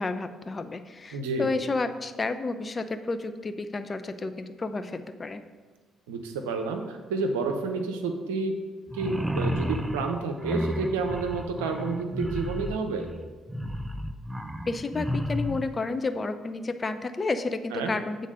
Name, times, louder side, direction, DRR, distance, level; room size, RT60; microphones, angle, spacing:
voice 1, 0.0-5.4 14.7-18.2, left 3 dB, 35° left, 9 dB, 0.6 m, -31 dB
voice 2, 1.1-1.5 6.1-8.5 8.9-13.1 17.7-17.9, right 3 dB, 80° right, 5 dB, 0.7 m, -30 dB
sound 1, 8.9-15.7, equal, 15° right, 0.6 m, -32 dB
8.2 x 3.9 x 6.4 m, 1.4 s
hypercardioid pair, 45°, 0 cm